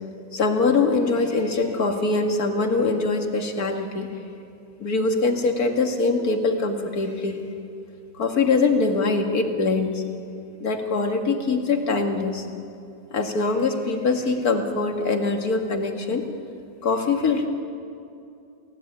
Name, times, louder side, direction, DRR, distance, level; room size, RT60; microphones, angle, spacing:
voice 1, 0.3-4.1 4.8-7.4 8.2-10.0 10.6-12.4 13.1-16.3 16.8-17.5, left 3 dB, 55° left, 4 dB, 2.5 m, -23 dB
29.5 x 16.5 x 9.0 m, 2.6 s
omnidirectional pair, 1.9 m